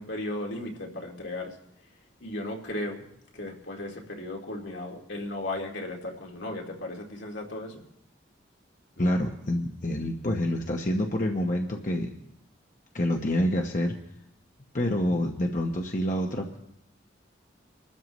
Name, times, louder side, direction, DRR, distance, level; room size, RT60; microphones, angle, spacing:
voice 1, 0.0-1.6 2.2-3.1 3.3-7.8 9.0-9.2, left 1 dB, 70° left, 0 dB, 2.2 m, -36 dB
voice 2, 9.0-12.1 12.9-13.9 14.7-16.6, left 1 dB, 40° left, 1 dB, 1.0 m, -27 dB
24.5 x 13.0 x 3.1 m, 0.77 s
head